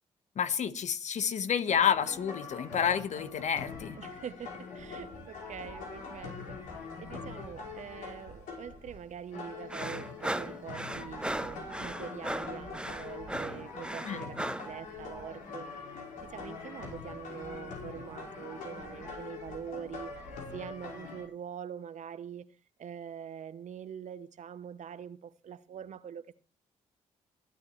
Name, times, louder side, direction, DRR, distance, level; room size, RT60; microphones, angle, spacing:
voice 1, 0.3-4.0 14.0-14.3, left 8 dB, 65° left, 1.4 m, -29 dB
sound 1, 1.7-21.2, left 4 dB, 80° left, 4.9 m, -43 dB
voice 2, 4.0-15.7 16.2-20.1 20.5-22.5 22.8-26.3, right 8 dB, 65° right, 1.0 m, -44 dB
sound 2, 9.7-14.7, right 1 dB, 5° right, 0.7 m, -37 dB
21.5 x 9.6 x 3.2 m
supercardioid pair, 55°, 13 cm